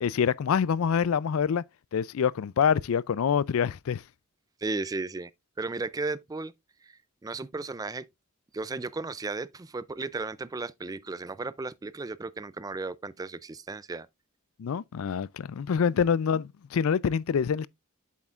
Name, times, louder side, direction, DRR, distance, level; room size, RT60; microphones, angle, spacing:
voice 1, 0.0-1.6 1.9-4.0 14.6-17.7, left 7 dB, 70° left, 0.4 m, -26 dB
voice 2, 4.6-5.3 5.6-6.5 6.8-8.1 8.5-14.1 15.9-16.0, right 3 dB, 15° right, 0.3 m, -35 dB
8.0 x 7.3 x 2.4 m
head